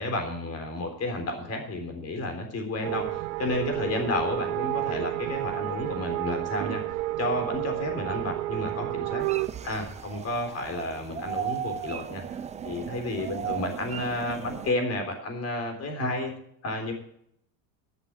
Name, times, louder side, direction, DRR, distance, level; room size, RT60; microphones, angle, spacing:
voice 1, 0.0-9.2 9.6-12.2 12.6-16.3 16.6-16.9, left 2 dB, 30° left, 5 dB, 3.7 m, -31 dB
sound 1, 2.8-9.5, right 16 dB, 65° right, 0.7 m, -30 dB
sound 2, 9.2-14.7, right 8 dB, 15° right, 0.4 m, -36 dB
11.0 x 7.5 x 7.7 m, 0.71 s
supercardioid pair, 130°, 48 cm